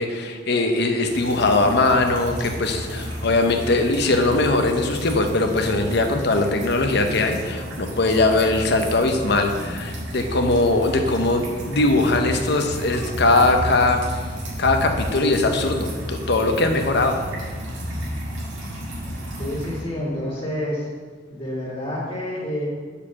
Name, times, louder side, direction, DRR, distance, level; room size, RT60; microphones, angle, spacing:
voice 1, 0.0-14.0 14.6-17.2, left 2 dB, 60° left, 5 dB, 0.8 m, -20 dB
sound 1, 1.1-19.8, equal, 90° right, 2.2 m, -32 dB
voice 2, 19.4-20.9 21.3-22.7, left 1 dB, 30° left, -6 dB, 2.3 m, -28 dB
6.7 x 4.9 x 7.0 m, 1.5 s
head